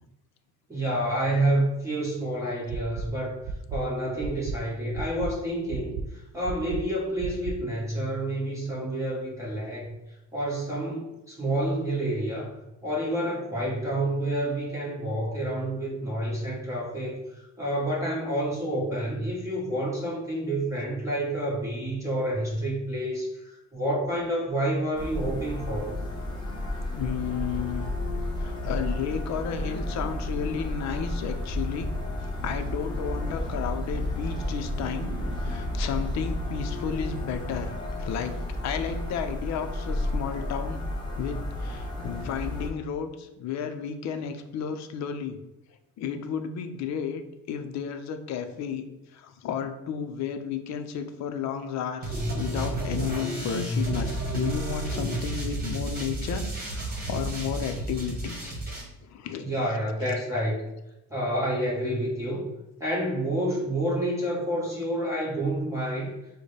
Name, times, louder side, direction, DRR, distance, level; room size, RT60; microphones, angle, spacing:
voice 1, 0.7-3.4 3.7-6.0 6.3-9.9 10.3-12.5 12.8-25.9 59.4-60.6 61.1-62.4 62.8-66.1, right 1 dB, 10° right, -6 dB, 1.2 m, -29 dB
sound 1, 2.7-3.0 3.4-3.8 4.2-4.6 4.9-5.3 5.7-6.0 6.4-6.8 7.2-7.5, right 5 dB, 45° right, 0.4 m, -33 dB
sound 2, 24.9-42.7, left 1 dB, 15° left, 1.1 m, -32 dB
voice 2, 26.6-28.0 28.4-31.9 32.2-35.2 35.4-37.7 38.0-38.4 38.6-40.8 41.2-45.4 46.0-47.2 47.5-48.9 49.1-58.6 59.1-59.7 60.0-60.1, left 7 dB, 65° left, 7 dB, 0.6 m, -33 dB
sound 3, 52.0-58.8, right 1 dB, 30° right, 1.5 m, -31 dB
6.3 x 2.2 x 3.3 m, 0.96 s
cardioid pair, 140°, 30 cm